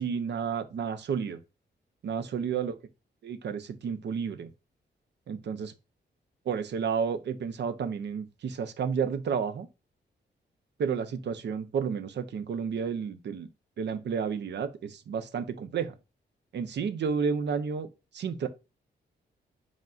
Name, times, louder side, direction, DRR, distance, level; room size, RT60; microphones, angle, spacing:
voice 1, 0.0-1.4 2.0-2.7 3.2-4.5 5.3-5.7 6.5-9.7 10.8-13.5 13.8-15.9 16.5-17.9 18.1-18.5, right 6 dB, 70° right, 0.7 m, -31 dB
5.3 x 3.7 x 2.5 m
cardioid pair, 85°, 18 cm